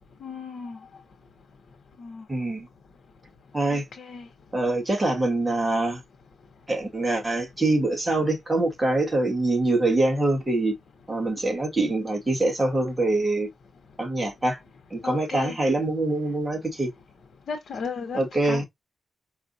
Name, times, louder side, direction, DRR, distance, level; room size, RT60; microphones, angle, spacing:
voice 1, 0.2-0.8 2.0-2.2 3.7-4.3 15.0-15.6 17.5-18.6, left 5 dB, 70° left, 0.9 m, -35 dB
voice 2, 2.3-2.7 3.5-3.8 4.5-6.0 6.7-10.7 11.1-13.5 14.0-14.6 14.9-16.9 18.1-18.6, right 2 dB, 20° right, 1.7 m, -24 dB
4.9 x 2.4 x 2.6 m
cardioid pair, 95°, 0 cm